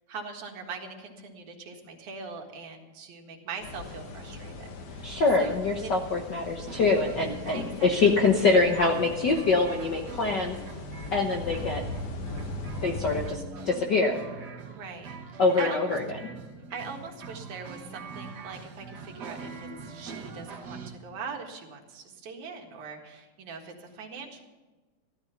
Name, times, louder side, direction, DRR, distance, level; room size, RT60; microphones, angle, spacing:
voice 1, 0.1-5.1 5.4-5.5 5.8-5.9 7.5-7.9 14.7-16.0 16.7-24.4, right 5 dB, 75° right, 2 dB, 3.2 m, -41 dB
sound 1, 3.6-13.3, left 2 dB, 80° left, 3.2 m, -39 dB
voice 2, 5.0-10.6 11.1-11.8 12.8-14.6 15.4-16.2, left 3 dB, 60° left, 2 dB, 1.1 m, -25 dB
sound 2, 6.7-20.9, right 4 dB, 50° right, 1.4 m, -43 dB
15.0 x 13.0 x 5.8 m, 1.2 s
omnidirectional pair, 3.4 m